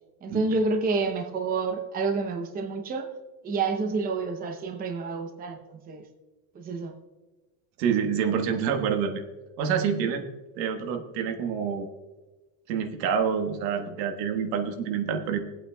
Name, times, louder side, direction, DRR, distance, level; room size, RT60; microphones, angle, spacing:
voice 1, 0.2-3.1 3.4-6.0 6.5-6.9, right 4 dB, 20° right, 3 dB, 0.7 m, -29 dB
voice 2, 7.8-9.2 9.6-10.2 10.6-11.9 12.7-15.4, right 7 dB, 85° right, 5 dB, 1.5 m, -27 dB
19.0 x 8.3 x 2.3 m, 1.2 s
cardioid pair, 165°, 48 cm